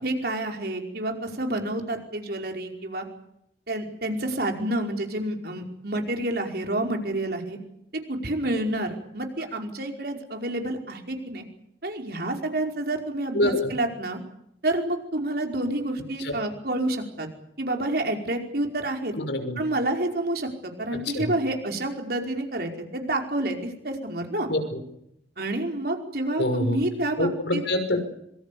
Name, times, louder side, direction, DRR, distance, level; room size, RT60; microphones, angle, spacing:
voice 1, 0.0-3.1 3.7-7.6 7.9-11.4 11.8-14.2 14.6-17.3 17.6-19.2 19.6-24.5 25.4-27.6, right 1 dB, 60° right, 3 dB, 5.2 m, -29 dB
voice 2, 13.3-13.7 16.2-16.4 19.2-19.6 21.1-21.2 24.5-24.8 26.4-26.8 27.2-28.0, left 1 dB, 80° left, 7 dB, 5.8 m, -25 dB
26.0 x 24.5 x 7.1 m, 0.78 s
head